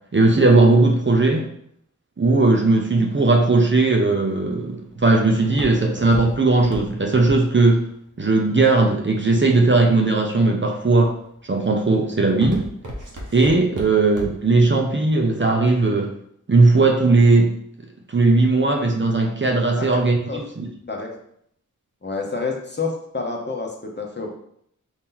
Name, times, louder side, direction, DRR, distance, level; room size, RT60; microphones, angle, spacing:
voice 1, 0.1-1.5 2.2-7.9 8.2-11.2 11.4-12.7 13.3-16.1 16.5-17.6 18.1-20.7, right 3 dB, 35° right, 2 dB, 0.6 m, -18 dB
Walk footsteps, 4.3-9.4 10.0-10.5 11.0-11.4 11.7-14.6 14.9-15.0, equal, 70° right, 1.0 m, -36 dB
voice 2, 19.8-20.4 20.9-21.2 22.0-24.4, left 4 dB, 35° left, 0 dB, 0.8 m, -29 dB
4.4 x 2.8 x 3.8 m, 0.70 s
wide cardioid pair, 60°, 32 cm